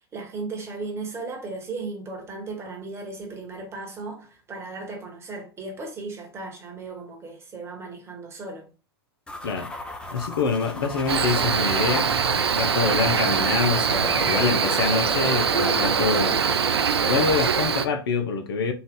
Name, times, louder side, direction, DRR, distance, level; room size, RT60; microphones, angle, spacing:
voice 1, 0.1-8.7, right 3 dB, 20° right, 1.2 m, -36 dB
sound 1, 9.3-17.8, left 2 dB, 5° left, 0.6 m, -36 dB
voice 2, 10.1-16.4 17.0-18.7, left 5 dB, 65° left, 0.6 m, -26 dB
Cricket, 11.1-17.9, right 7 dB, 75° right, 0.4 m, -23 dB
3.9 x 2.5 x 3.6 m
figure-of-eight pair, 100°, 13 cm